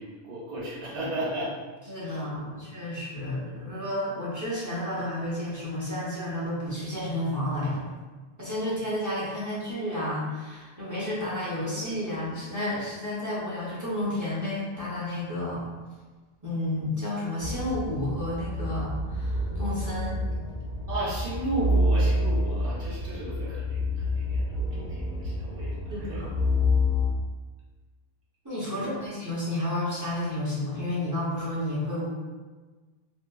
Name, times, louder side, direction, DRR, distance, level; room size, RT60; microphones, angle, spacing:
voice 1, 0.0-1.5 2.0-2.2 2.5-2.6 20.9-26.2 28.7-28.8, right 1 dB, 60° right, -7 dB, 1.1 m, -34 dB
voice 2, 1.9-7.9 8.4-15.6 16.4-20.2 25.9-26.3 28.4-32.1, left 1 dB, 20° right, -8 dB, 0.6 m, -31 dB
sound 1, 17.4-27.1, left 1 dB, 50° left, 0.6 m, -28 dB
2.7 x 2.4 x 2.3 m, 1.3 s
omnidirectional pair, 1.1 m